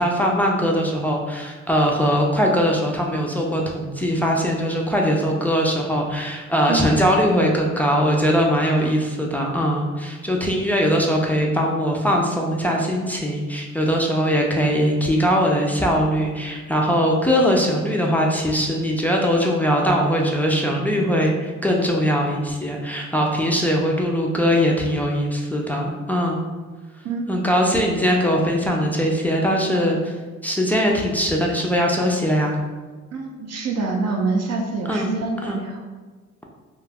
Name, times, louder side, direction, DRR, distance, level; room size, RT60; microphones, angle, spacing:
voice 1, 0.0-26.4 27.3-30.1 30.4-32.6 34.9-35.1 35.4-35.6, equal, 5° left, -1 dB, 0.3 m, -21 dB
voice 2, 33.1-35.8, right 3 dB, 55° right, 2 dB, 0.4 m, -26 dB
2.2 x 2.0 x 3.3 m, 1.3 s
cardioid pair, 90°, 30 cm